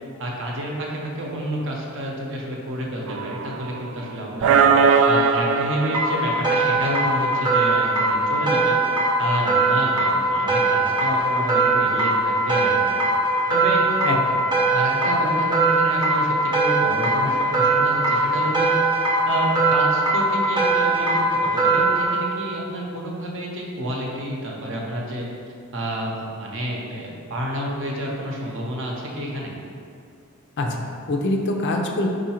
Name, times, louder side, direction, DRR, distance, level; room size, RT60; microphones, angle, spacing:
voice 1, 0.2-4.6 5.1-8.7 9.2-13.0 13.5-13.8 14.7-25.3 25.7-29.5, right 1 dB, 65° right, -2 dB, 0.7 m, -29 dB
sound 1, 3.1-4.0 4.4-7.2, right 5 dB, 80° right, 0.3 m, -20 dB
sound 2, 5.9-22.1, right 2 dB, 20° right, 0.6 m, -21 dB
voice 2, 14.0-14.5 30.6-32.1, left 2 dB, 55° left, 2 dB, 0.5 m, -25 dB
4.6 x 2.5 x 4.3 m, 2.4 s
head